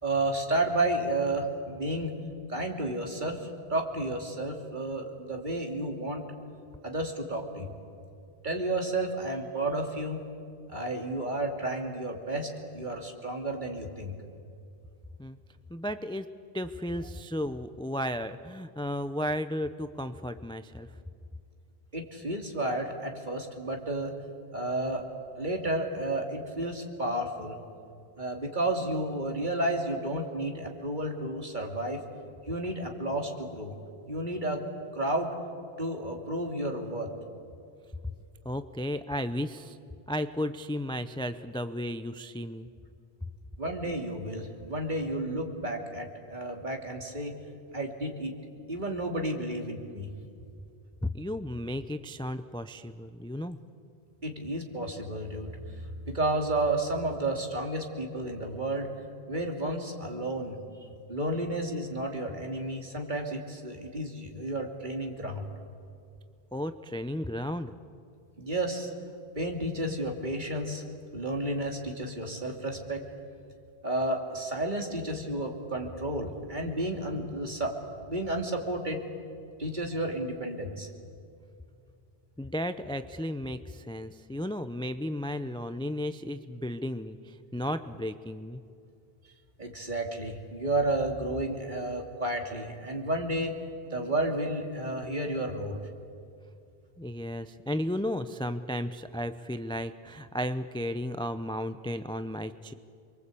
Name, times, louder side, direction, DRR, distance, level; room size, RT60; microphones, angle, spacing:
voice 1, 0.0-2.1 2.5-6.2 6.8-7.7 8.4-10.2 10.7-14.1 21.9-24.1 24.5-25.0 25.4-27.6 28.2-32.0 32.5-33.7 34.1-34.6 34.9-35.3 35.8-37.1 43.6-47.3 47.7-48.3 48.7-50.1 54.2-58.9 59.3-60.6 61.1-65.4 68.4-68.9 69.3-70.8 71.1-73.0 73.8-77.8 78.1-79.0 79.6-80.9 89.6-93.5 93.9-95.8, right 1 dB, 50° right, 2 dB, 2.9 m, -31 dB
voice 2, 15.7-16.3 16.5-20.9 38.4-39.8 40.1-42.7 51.0-53.6 66.5-67.7 82.4-88.6 97.0-102.7, equal, 5° left, 10 dB, 0.5 m, -34 dB
28.5 x 23.0 x 8.5 m, 2.4 s
omnidirectional pair, 1.0 m